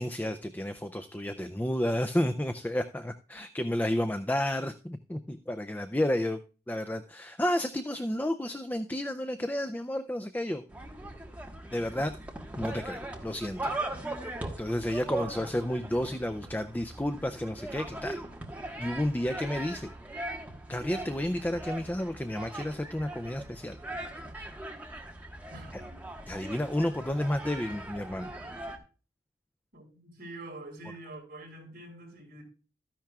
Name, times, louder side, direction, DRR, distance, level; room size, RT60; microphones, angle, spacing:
voice 1, 0.0-6.4 6.7-10.6 11.7-12.2 12.6-13.6 14.6-18.2 18.8-19.9 20.7-23.8 25.7-25.8 26.3-28.3, left 1 dB, 10° left, 0.4 m, -31 dB
sound 1, 10.7-28.8, right 1 dB, 10° right, 1.4 m, -40 dB
voice 2, 15.1-15.5 25.5-26.0 29.7-32.4, right 2 dB, 50° right, 5.2 m, -46 dB
13.5 x 10.5 x 2.3 m
head